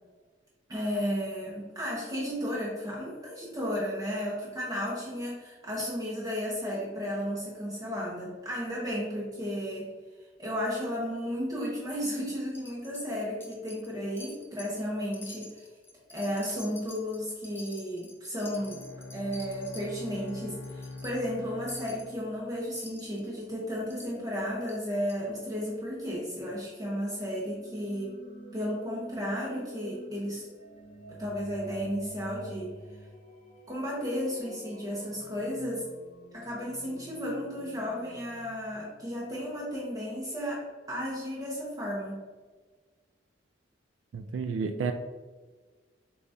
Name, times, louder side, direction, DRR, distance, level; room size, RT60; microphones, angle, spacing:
voice 1, 0.7-9.9 10.4-15.7 16.1-18.8 19.1-28.1 28.5-30.4 31.1-32.7 33.7-35.8 36.3-42.2, equal, 20° right, -5 dB, 0.8 m, -33 dB
Wind chime, 12.5-13.1 13.4-13.9 14.2-14.8 15.1-19.9 20.3-20.4 20.6-21.1 21.7-22.1 22.7-23.2 23.9-24.1 24.7-24.8 25.1-25.2, left 2 dB, 10° left, 0.5 m, -48 dB
Bowed string instrument, 18.4-22.9, left 2 dB, 75° left, 0.5 m, -45 dB
sound 1, 27.4-39.3, right 1 dB, 35° left, 1.2 m, -48 dB
voice 2, 44.1-44.9, right 5 dB, 80° right, 7 dB, 0.3 m, -31 dB
6.7 x 2.3 x 2.6 m, 1.4 s
head